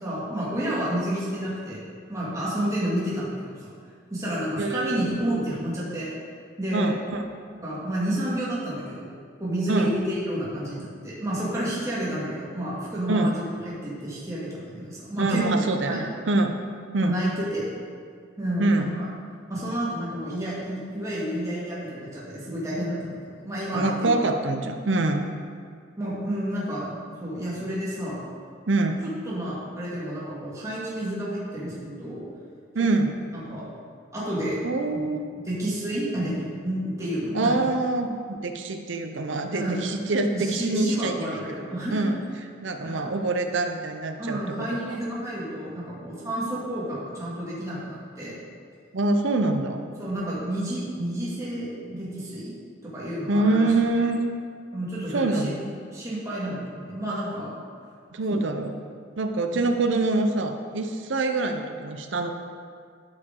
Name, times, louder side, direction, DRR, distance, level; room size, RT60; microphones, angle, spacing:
voice 1, 0.0-1.8 2.1-3.7 4.1-6.1 6.6-6.9 7.6-9.1 9.4-16.0 17.0-17.6 18.4-19.1 19.5-23.9 26.0-28.2 29.3-32.2 33.3-33.7 34.1-34.6 34.9-35.1 35.4-37.6 39.5-39.8 40.3-42.1 42.8-43.1 44.2-48.4 50.0-52.5 52.8-53.7 54.7-55.6 55.9-57.5 58.3-58.4, right 1 dB, 15° right, -8 dB, 2.0 m, -30 dB
voice 2, 4.6-5.0 6.7-7.2 9.7-10.0 13.1-13.3 15.2-16.5 16.9-17.2 18.6-18.9 23.7-25.3 28.7-29.0 32.7-33.1 34.6-35.3 37.3-41.6 41.9-42.2 42.6-44.4 44.9-45.0 48.9-49.8 53.3-54.3 55.0-55.6 58.1-58.7 59.2-62.3, right 2 dB, 65° right, 5 dB, 0.7 m, -25 dB
12.5 x 4.9 x 3.8 m, 2.1 s
head